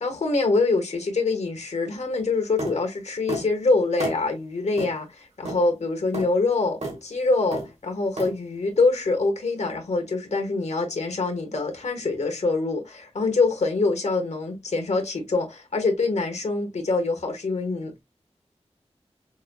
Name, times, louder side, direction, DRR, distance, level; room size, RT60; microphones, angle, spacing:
voice 1, 0.0-18.0, left 3 dB, 75° left, 1.3 m, -25 dB
sound 1, 2.6-2.8 3.3-3.5 4.0-4.2 4.8-4.9 5.4-5.6 6.1-6.3 6.8-7.0 7.5-7.7 8.2-8.3, right 2 dB, 75° right, 1.8 m, -30 dB
5.4 x 2.6 x 2.2 m
wide cardioid pair, 75°, 11 cm